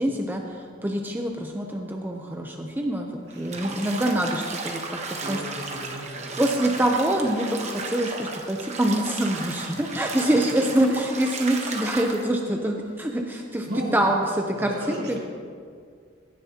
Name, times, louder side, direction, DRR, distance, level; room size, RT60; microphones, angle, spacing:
voice 1, 0.0-4.8 5.3-5.4 6.4-15.2, right 1 dB, 10° right, 1 dB, 0.7 m, -25 dB
voice 2, 3.3-3.8 5.2-6.4 9.8-9.9 13.7-14.0 14.5-15.2, right 1 dB, 65° right, -3 dB, 2.5 m, -35 dB
Bathtub (filling or washing), 3.4-12.2, right 3 dB, 40° right, 1.1 m, -34 dB
17.0 x 11.0 x 2.9 m, 2.1 s
head